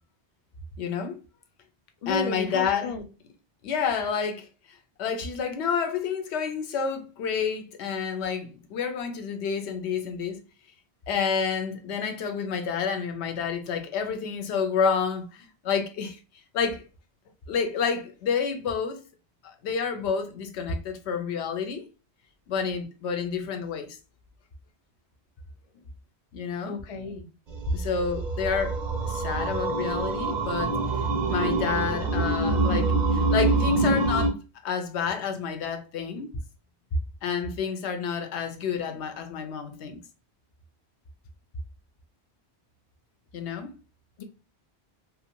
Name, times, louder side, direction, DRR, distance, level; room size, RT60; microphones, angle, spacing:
voice 1, 0.8-1.2 2.1-2.9 3.6-10.4 11.1-16.2 16.5-16.8 17.5-19.0 19.4-21.9 22.5-23.9 26.3-26.8 27.7-28.8 29.0-34.4 34.6-36.3 37.2-40.0 43.3-43.8, left 6 dB, 80° left, 0.8 m, -29 dB
voice 2, 2.0-3.1 20.7-20.8 26.6-27.3 36.9-37.0 44.2-44.3, left 1 dB, 55° left, 0.4 m, -31 dB
sound 1, 27.5-34.3, right 3 dB, 55° right, 0.5 m, -25 dB
2.5 x 2.2 x 2.8 m
omnidirectional pair, 1.1 m